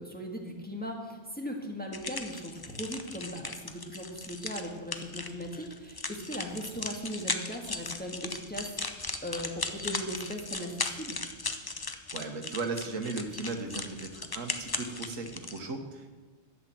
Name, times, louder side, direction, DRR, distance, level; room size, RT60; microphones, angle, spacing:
voice 1, 0.0-11.2, equal, 5° left, 0 dB, 1.7 m, -38 dB
sound 1, 1.9-15.6, left 3 dB, 25° left, 0.5 m, -37 dB
voice 2, 12.1-16.1, right 3 dB, 75° right, 5 dB, 1.6 m, -36 dB
11.5 x 8.1 x 7.5 m, 1.3 s
omnidirectional pair, 1.4 m